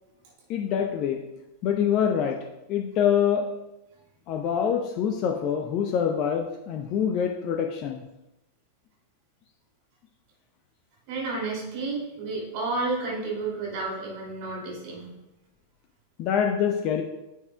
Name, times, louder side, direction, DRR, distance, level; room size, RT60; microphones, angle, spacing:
voice 1, 0.5-1.2 1.6-2.4 2.7-3.4 4.3-8.0 16.2-17.0, left 8 dB, 40° left, 4 dB, 0.6 m, -25 dB
voice 2, 11.1-15.1, right 3 dB, 45° right, -4 dB, 2.7 m, -31 dB
10.0 x 6.5 x 2.3 m, 0.94 s
figure-of-eight pair, 90°, 0 cm